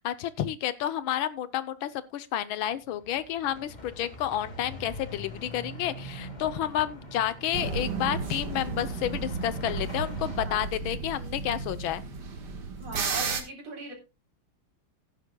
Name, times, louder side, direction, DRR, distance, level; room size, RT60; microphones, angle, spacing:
voice 1, 0.0-12.0, left 11 dB, 75° left, 1.6 m, -30 dB
sound 1, 2.7-10.4, left 1 dB, 20° left, 1.8 m, -43 dB
sound 2, 7.5-13.4, right 4 dB, 55° right, 2.0 m, -33 dB
voice 2, 10.4-10.7 12.8-13.9, right 3 dB, 85° right, 4.5 m, -39 dB
16.0 x 10.0 x 2.2 m
omnidirectional pair, 2.3 m